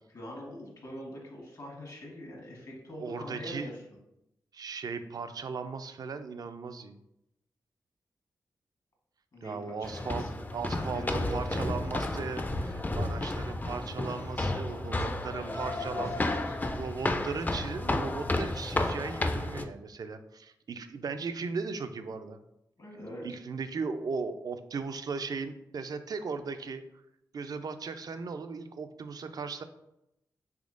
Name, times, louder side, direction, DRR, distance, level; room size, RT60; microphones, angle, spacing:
voice 1, 0.1-3.8 9.3-11.7 14.4-16.6 22.8-23.3, equal, 60° left, -2 dB, 1.2 m, -43 dB
voice 2, 3.0-3.7 4.5-7.0 9.4-10.3 10.5-16.2 16.7-22.4 23.2-26.8 27.3-29.6, right 5 dB, 55° right, 10 dB, 0.3 m, -37 dB
sound 1, 9.8-19.6, left 2 dB, 25° left, 0.4 m, -32 dB
3.5 x 3.1 x 2.5 m, 0.85 s
supercardioid pair, 45°, 8 cm